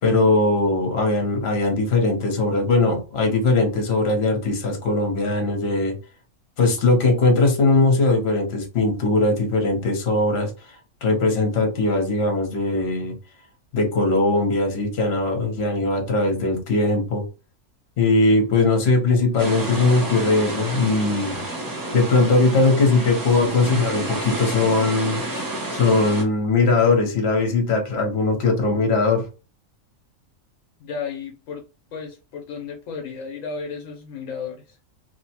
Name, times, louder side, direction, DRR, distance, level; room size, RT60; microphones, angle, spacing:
voice 1, 0.0-5.9 6.6-13.1 13.7-17.2 18.0-21.4 21.9-25.4 25.7-29.3, left 3 dB, 55° left, 3 dB, 1.1 m, -20 dB
sound 1, 19.4-26.2, right 1 dB, 25° right, 0.4 m, -30 dB
voice 2, 30.8-31.6 31.9-34.8, left 5 dB, 75° left, 2 dB, 1.0 m, -33 dB
3.0 x 2.1 x 2.8 m, 0.32 s
omnidirectional pair, 1.4 m